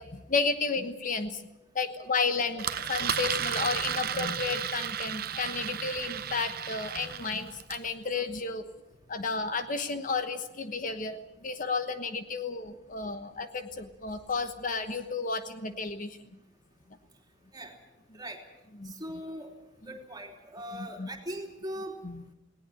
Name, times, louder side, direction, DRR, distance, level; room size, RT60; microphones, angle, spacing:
voice 1, 0.0-1.4 1.7-8.6 9.1-16.2 18.8-18.9 20.8-21.1 22.0-22.3, left 4 dB, 45° left, 9 dB, 1.2 m, -32 dB
Engine, 2.6-7.9, right 8 dB, 50° right, 0.9 m, -33 dB
voice 2, 18.8-19.5 19.9-22.0, equal, 20° right, 2 dB, 3.2 m, -40 dB
19.5 x 18.0 x 9.0 m, 1.0 s
head